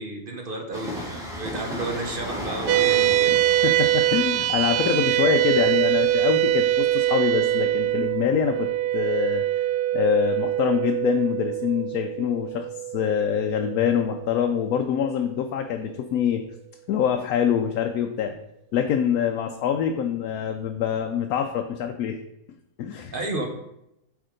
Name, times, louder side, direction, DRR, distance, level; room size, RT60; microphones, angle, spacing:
voice 1, 0.0-3.4 3.7-3.8 23.1-23.5, right 2 dB, 40° right, 2 dB, 1.0 m, -32 dB
Train, 0.7-8.2 8.4-8.5, equal, ahead, 1.5 m, -36 dB
sound 1, 2.7-15.3, right 13 dB, 85° right, 1.1 m, -24 dB
voice 2, 3.3-8.7 8.9-9.4 9.9-12.7 12.9-16.4 16.9-18.4 18.7-22.2 22.8-23.1, left 8 dB, 75° left, 5 dB, 1.0 m, -25 dB
7.9 x 3.6 x 5.0 m, 0.83 s
omnidirectional pair, 1.6 m